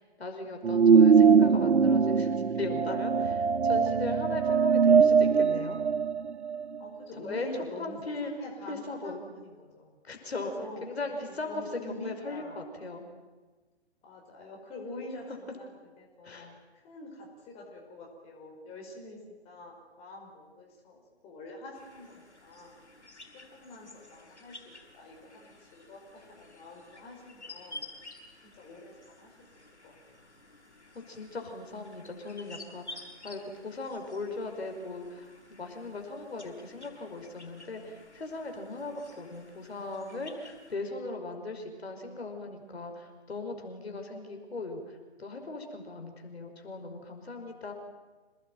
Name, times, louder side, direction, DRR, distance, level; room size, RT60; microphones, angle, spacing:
voice 1, 0.0-5.8 7.2-7.5 7.8-8.3 8.7-9.2 10.0-10.5 10.8-13.0 16.2-16.5 30.9-47.7, left 3 dB, 65° left, 4 dB, 5.3 m, -38 dB
sound 1, 0.6-6.8, right 6 dB, 80° right, 0.8 m, -22 dB
voice 2, 6.8-10.0 10.4-12.6 14.0-15.7 16.0-22.8 23.3-24.6 24.9-27.9 28.5-29.3 29.8-30.2, left 2 dB, 20° left, 0 dB, 5.2 m, -46 dB
sound 2, 21.7-40.7, left 2 dB, 85° left, 7.0 m, -51 dB
27.0 x 19.5 x 9.3 m, 1.3 s
figure-of-eight pair, 135°, 33 cm